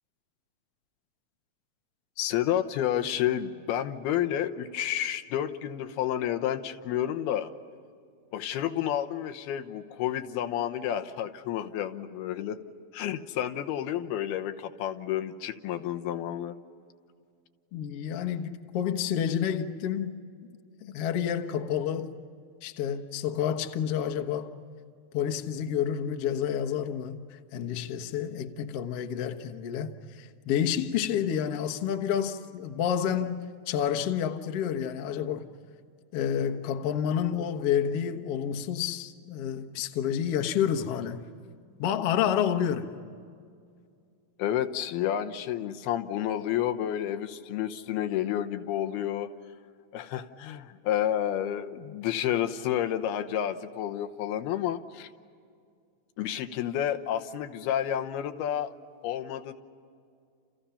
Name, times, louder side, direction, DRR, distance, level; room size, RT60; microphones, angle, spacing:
voice 1, 2.2-7.5 8.3-12.6 12.9-16.5 44.4-49.3 49.9-55.1 56.2-58.7 59.0-59.5, left 11 dB, 90° left, 3.0 m, -30 dB
voice 2, 17.7-20.2 20.8-22.1 22.6-24.5 25.1-35.5 36.1-41.2 41.8-42.9, left 9 dB, 60° left, 1.6 m, -29 dB
30.0 x 29.5 x 5.7 m
omnidirectional pair, 4.3 m